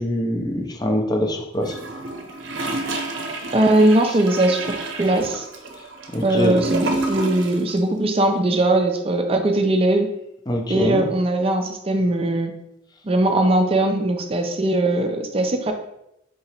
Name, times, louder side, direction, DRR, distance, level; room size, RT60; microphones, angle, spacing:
voice 1, 0.0-1.8 6.1-6.6 10.5-11.1, equal, 20° left, 3 dB, 0.5 m, -23 dB
Gurgling / Toilet flush, 1.6-7.7 8.0-8.1, right 2 dB, 70° right, 0.7 m, -29 dB
voice 2, 3.5-5.5 6.2-10.1 10.7-12.5 13.0-15.7, right 1 dB, 30° right, 5 dB, 0.5 m, -20 dB
3.8 x 2.9 x 4.3 m, 0.83 s
head